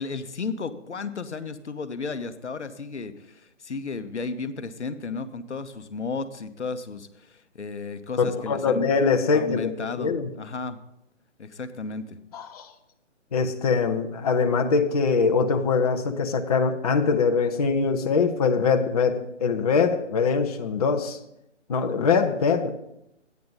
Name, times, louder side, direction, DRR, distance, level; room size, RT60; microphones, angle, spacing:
voice 1, 0.0-8.9 9.3-10.8 11.4-12.2, left 4 dB, 70° left, 10 dB, 0.9 m, -33 dB
voice 2, 8.2-10.3 12.3-12.7 13.3-21.2 21.7-22.7, left 5 dB, 30° left, 4 dB, 0.7 m, -23 dB
12.5 x 9.4 x 3.9 m, 0.81 s
figure-of-eight pair, 140°, 37 cm